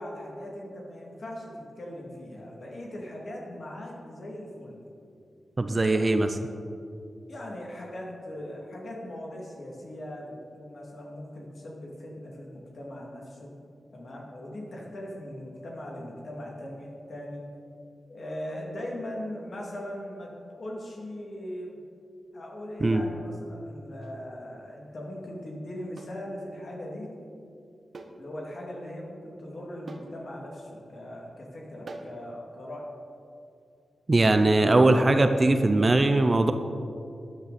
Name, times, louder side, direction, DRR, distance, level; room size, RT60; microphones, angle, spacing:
voice 1, 0.0-4.8 5.8-6.2 7.2-13.6 13.9-17.4 18.1-21.8 22.3-27.1 28.2-32.9, left 1 dB, 50° left, -2 dB, 2.5 m, -39 dB
voice 2, 5.6-6.4 22.8-23.0 34.1-36.5, right 2 dB, 25° right, 8 dB, 0.5 m, -21 dB
sound 1, 24.0-24.2 26.0-26.2 27.9-28.2 28.6-28.7 29.9-30.2 31.9-32.2, right 3 dB, 45° right, 1.0 m, -43 dB
13.0 x 10.5 x 4.2 m, 2.4 s
wide cardioid pair, 170°, 0 cm